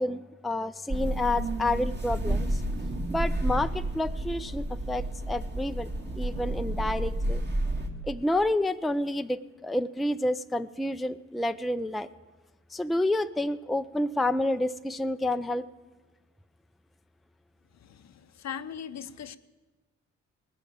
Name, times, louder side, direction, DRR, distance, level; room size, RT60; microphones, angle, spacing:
voice 1, 0.0-2.6 3.1-5.9 6.2-7.4 8.0-12.1 12.7-15.7, left 1 dB, ahead, 10 dB, 0.4 m, -29 dB
sound 1, 0.9-7.9, right 1 dB, 35° right, 2.0 m, -30 dB
voice 2, 17.8-19.4, left 8 dB, 55° left, 14 dB, 0.7 m, -39 dB
18.5 x 7.0 x 7.4 m, 1.2 s
supercardioid pair, 45°, 32 cm